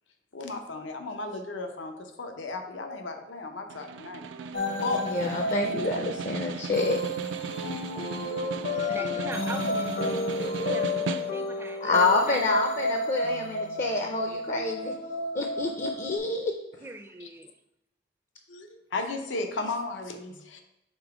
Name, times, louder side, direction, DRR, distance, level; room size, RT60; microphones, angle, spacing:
voice 1, 0.3-4.3 4.8-5.3 17.2-17.3 18.5-20.6, left 3 dB, 90° left, 5 dB, 0.7 m, -35 dB
Snare drum, 3.7-11.6, right 4 dB, 80° right, 0.4 m, -37 dB
sound 1, 4.5-16.2, left 1 dB, 65° left, 1.0 m, -31 dB
voice 2, 5.0-7.0 11.8-14.9 15.3-16.5, left 3 dB, 45° left, 3 dB, 0.5 m, -27 dB
voice 3, 8.7-12.4 16.8-17.5, right 2 dB, 15° right, 8 dB, 0.4 m, -41 dB
5.3 x 3.8 x 4.8 m, 0.88 s
head